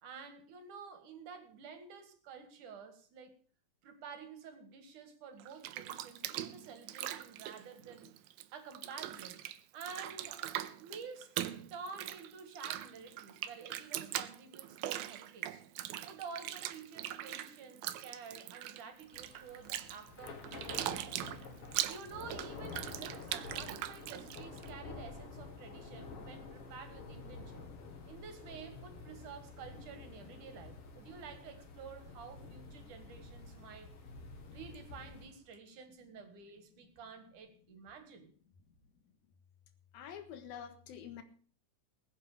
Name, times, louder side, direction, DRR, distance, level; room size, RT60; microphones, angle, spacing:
voice 1, 0.0-3.3 3.8-8.1 8.5-9.5 9.7-11.3 11.7-15.6 16.0-21.0 21.9-27.6 28.1-33.9 34.5-38.3, right 5 dB, 60° right, 8 dB, 3.2 m, -50 dB
Bathtub (filling or washing), 5.4-8.4 8.7-24.7, right 13 dB, 90° right, 2.7 m, -41 dB
Thunder / Rain, 19.1-35.4, left 3 dB, 45° left, 2.7 m, -49 dB
voice 2, 39.9-41.2, left 8 dB, 90° left, 8 dB, 3.4 m, -47 dB
20.5 x 8.4 x 5.0 m, 0.43 s
omnidirectional pair, 4.1 m